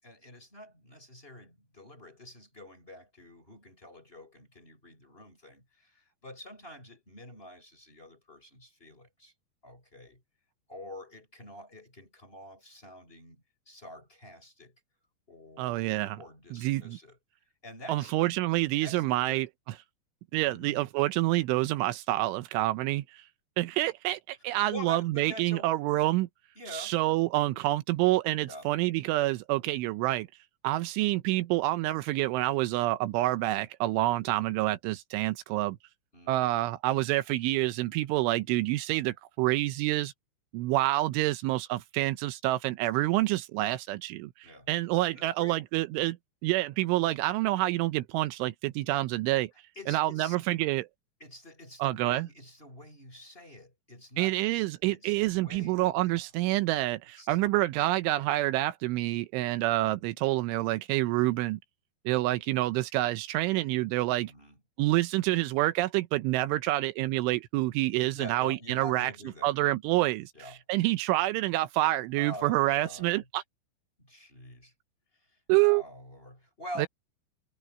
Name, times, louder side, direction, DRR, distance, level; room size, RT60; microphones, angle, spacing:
voice 1, 0.0-9.3 9.6-10.2 10.7-14.8 15.3-17.2 17.6-18.1 18.8-19.4 20.4-20.8 24.4-25.7 26.6-27.0 28.4-28.7 36.1-36.5 44.4-44.7 45.1-45.6 49.8-50.4 51.2-54.3 54.9-56.2 56.9-57.4 58.0-58.3 64.2-64.6 68.1-69.6 70.3-70.6 72.2-73.3 74.0-74.7 75.3-76.9, left 1 dB, 10° left, 5.4 m, -47 dB
voice 2, 15.6-16.2 16.5-17.0 17.9-19.5 20.3-23.2 23.6-26.3 26.7-30.3 30.6-35.8 36.3-40.1 40.5-44.3 44.7-46.2 46.4-49.5 49.9-50.9 51.8-52.3 54.2-61.6 62.1-64.3 64.8-69.1 69.4-70.3 70.7-73.4 75.5-75.8 76.8-76.9, right 17 dB, 85° right, 3.2 m, -27 dB
omnidirectional pair, 5.6 m